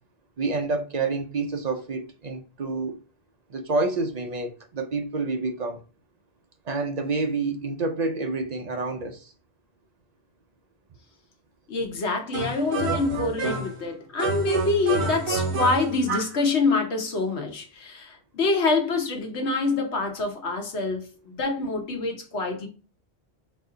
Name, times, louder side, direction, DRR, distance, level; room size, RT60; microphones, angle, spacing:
voice 1, 0.4-3.0 3.5-5.8 6.7-9.3, right 3 dB, 50° right, 0.6 m, -28 dB
voice 2, 11.7-22.7, left 3 dB, 85° left, 1.3 m, -26 dB
sound 1, 12.3-13.8 14.2-16.4, right 4 dB, 80° right, 1.3 m, -28 dB
4.2 x 2.6 x 3.7 m
omnidirectional pair, 1.1 m